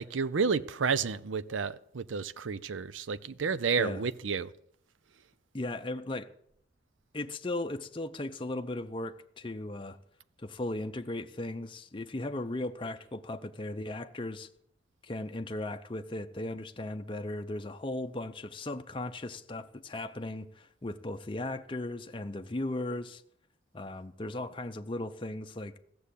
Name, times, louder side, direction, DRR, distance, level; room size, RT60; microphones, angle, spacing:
voice 1, 0.0-4.5, right 5 dB, 90° right, 0.6 m, -31 dB
voice 2, 5.5-6.3 7.1-10.0 10.4-14.5 15.0-23.2 23.7-25.7, left 2 dB, 25° left, 0.6 m, -37 dB
15.0 x 7.0 x 8.3 m
head